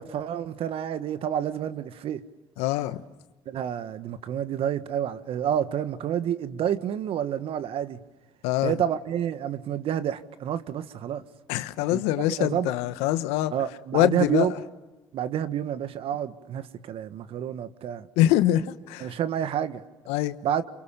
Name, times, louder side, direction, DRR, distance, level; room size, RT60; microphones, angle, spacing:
voice 1, 0.0-2.2 3.5-8.0 8.6-11.2 11.9-12.0 12.4-12.7 13.5-14.5 15.1-18.1 19.0-19.8 20.4-20.6, right 9 dB, 60° right, 1.7 m, -29 dB
voice 2, 2.6-3.0 8.4-8.7 11.5-13.5 13.9-14.5 18.2-19.1 20.1-20.4, left 14 dB, 80° left, 1.3 m, -24 dB
29.5 x 27.5 x 6.9 m
hypercardioid pair, 60°, 10 cm